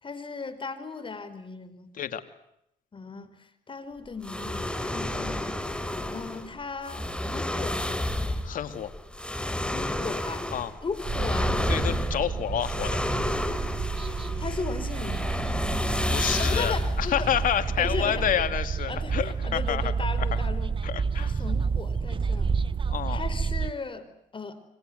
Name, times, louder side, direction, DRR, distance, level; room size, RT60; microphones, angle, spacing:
voice 1, 0.0-1.9 2.9-5.5 6.1-8.0 9.7-10.5 10.8-11.6 14.4-15.3 16.4-17.3 17.8-18.3 18.9-20.7 21.1-22.6 23.1-24.1 24.3-24.6, left 4 dB, 35° left, 12 dB, 4.9 m, -36 dB
sound 1, 4.2-18.1, left 1 dB, 5° left, 4.3 m, -30 dB
voice 2, 8.4-8.9 10.5-10.7 11.7-13.0 16.1-19.9 20.2-20.3 20.8-21.4 22.9-23.2, left 9 dB, 70° left, 9 dB, 2.7 m, -29 dB
sound 2, 11.0-23.7, right 5 dB, 35° right, 1.1 m, -30 dB
28.0 x 25.0 x 8.1 m, 0.80 s
cardioid pair, 80°, 15 cm